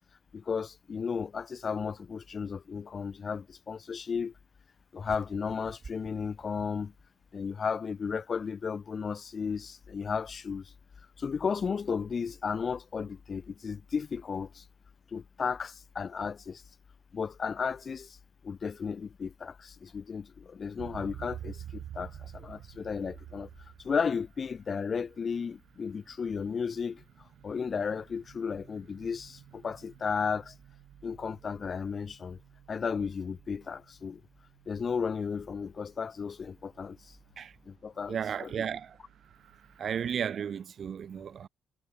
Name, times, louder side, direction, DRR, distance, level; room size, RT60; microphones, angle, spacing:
voice 1, 0.3-4.3 4.9-6.9 7.3-10.6 11.2-14.6 15.1-16.6 17.1-18.2 18.4-23.5 23.8-27.0 27.4-30.5 31.0-32.4 32.7-34.2 34.7-37.0 37.7-38.5, left 6 dB, 45° left, 0.5 m, -34 dB
sound 1, 5.0-7.4, right 4 dB, 35° right, 1.6 m, -50 dB
sound 2, 20.8-37.8 38.2-39.8, right 11 dB, 70° right, 2.6 m, -51 dB
voice 2, 38.1-39.0 39.8-41.5, right 8 dB, 55° right, 0.3 m, -34 dB
cardioid pair, 90°, 0 cm